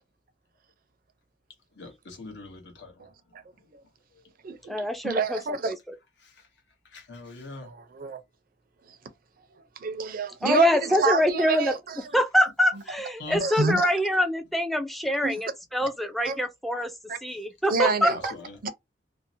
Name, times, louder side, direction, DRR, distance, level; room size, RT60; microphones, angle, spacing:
voice 1, 1.8-3.1 6.2-6.3 6.9-7.7 13.2-13.4 18.3-18.6, left 2 dB, 70° left, 0.8 m, -41 dB
voice 2, 3.0-3.4 4.4-4.8 5.0-5.7 7.6-8.2 9.8-12.0 13.4-13.9 15.2-15.3 16.3-16.4 17.1-17.2 17.7-18.2 18.6-18.7, right 4 dB, 55° right, 0.5 m, -28 dB
voice 3, 4.7-5.4 5.7-5.8 10.4-11.7 12.1-16.9 17.2-18.3, left 1 dB, ahead, 0.4 m, -25 dB
2.6 x 2.0 x 2.6 m
head